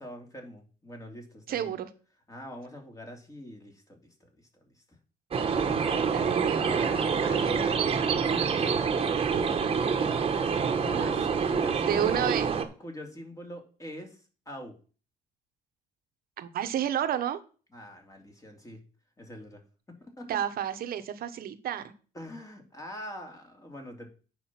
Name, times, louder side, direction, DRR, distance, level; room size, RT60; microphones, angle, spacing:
voice 1, 0.0-1.7 2.3-4.3 4.7-4.8 6.5-9.6 10.3-12.3 12.8-14.2 14.5-14.7 17.7-18.8 19.2-19.6 19.9-20.3 22.1-24.1, equal, 20° left, 3 dB, 2.8 m, -43 dB
voice 2, 1.5-1.9 5.9-6.7 11.0-11.1 11.8-12.5 16.4-17.4 20.3-21.9, right 10 dB, 60° right, 9 dB, 1.1 m, -31 dB
sound 1, 5.3-12.6, right 6 dB, 35° right, 1.3 m, -27 dB
9.2 x 5.5 x 5.9 m, 0.37 s
cardioid pair, 110°, 17 cm